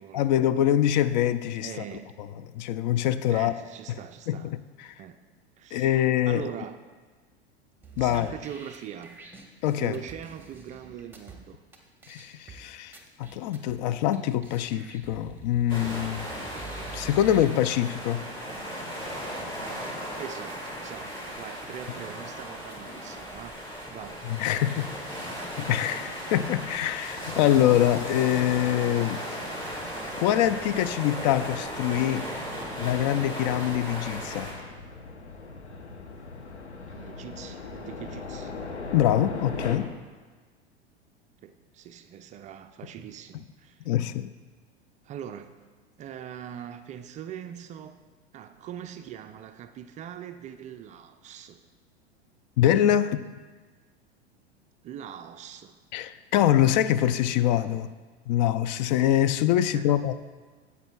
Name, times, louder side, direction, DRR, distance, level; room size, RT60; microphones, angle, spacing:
voice 1, 0.1-1.7 2.6-3.5 4.3-5.0 5.7-6.4 8.0-8.3 9.6-10.0 12.1-16.5 16.9-18.3 24.3-24.9 25.6-29.8 30.2-32.3 32.7-34.5 38.9-39.9 43.9-44.3 52.6-53.2 55.9-57.9 58.3-60.1, left 11 dB, 40° left, 0.4 m, -24 dB
voice 2, 1.6-2.1 3.3-4.5 5.0-5.2 5.6-6.8 8.0-9.3 9.8-11.6 20.2-23.6 23.9-24.2 24.7-25.5 36.9-38.5 41.4-43.9 45.0-45.5 46.0-48.0 48.3-51.6 54.8-55.8 59.7-60.0, right 9 dB, 25° right, 0.4 m, -42 dB
sound 1, 7.8-11.3 11.7-11.8 12.0-12.5 12.9-13.7 14.1-14.2 14.4-17.4, right 3 dB, 5° right, 1.4 m, -46 dB
sound 2, 15.7-34.5, equal, 15° left, 2.7 m, -36 dB
sound 3, 31.8-39.8, left 3 dB, 85° left, 1.0 m, -40 dB
15.5 x 8.1 x 2.4 m
figure-of-eight pair, 85°, 33 cm